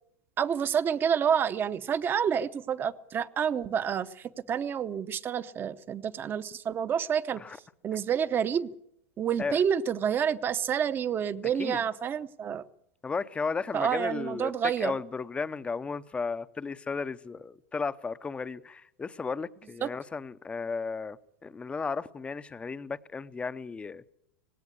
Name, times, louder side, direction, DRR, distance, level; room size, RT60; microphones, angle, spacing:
voice 1, 0.4-7.4 7.8-8.7 9.2-12.6 13.7-15.0 19.8-19.9, right 8 dB, 25° right, 0.8 m, -28 dB
voice 2, 13.0-14.5 14.8-21.2 21.4-24.0, left 4 dB, 15° left, 0.7 m, -34 dB
18.5 x 17.0 x 8.3 m
hypercardioid pair, 115°, 8 cm